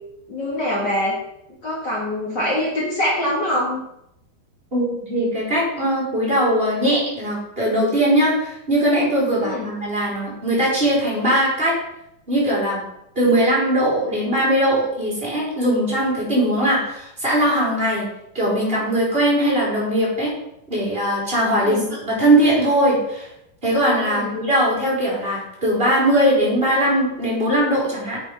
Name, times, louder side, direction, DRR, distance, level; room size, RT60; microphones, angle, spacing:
voice 1, 0.3-1.2 1.6-3.8 9.4-9.7 21.5-21.9 24.1-24.3, left 1 dB, 75° left, -4 dB, 1.0 m, -24 dB
voice 2, 4.7-11.7 12.3-12.8 13.2-18.0 18.3-20.3 20.7-23.3 23.6-28.2, right 1 dB, 15° right, -5 dB, 3.8 m, -20 dB
8.9 x 7.6 x 5.4 m, 0.79 s
omnidirectional pair, 5.3 m